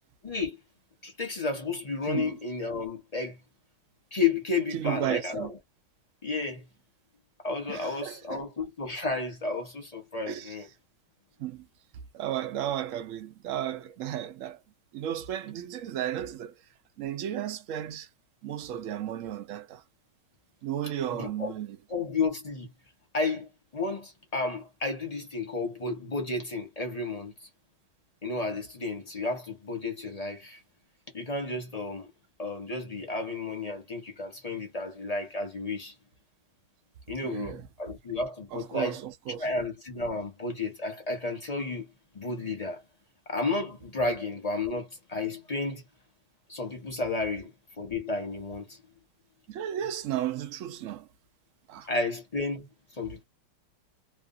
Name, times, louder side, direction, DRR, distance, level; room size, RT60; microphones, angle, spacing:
voice 1, 0.2-0.6 1.0-3.4 4.1-5.6 6.2-6.7 7.4-10.7 21.1-21.5 21.9-22.7 23.1-27.5 28.2-30.6 31.1-32.1 32.4-35.9 37.1-39.0 39.4-41.9 42.1-42.8 43.3-45.8 46.5-47.5 47.8-48.8 51.8-53.2, left 3 dB, 25° left, 0.9 m, -32 dB
voice 2, 4.7-5.5 7.7-8.4 10.3-10.5 11.4-11.6 12.1-14.6 14.9-16.5 17.0-18.1 18.4-19.8 20.6-21.7 37.2-37.6 38.5-39.5 49.5-51.1 51.7-51.9, right 11 dB, 70° right, 0.7 m, -34 dB
3.1 x 2.4 x 2.5 m
omnidirectional pair, 2.0 m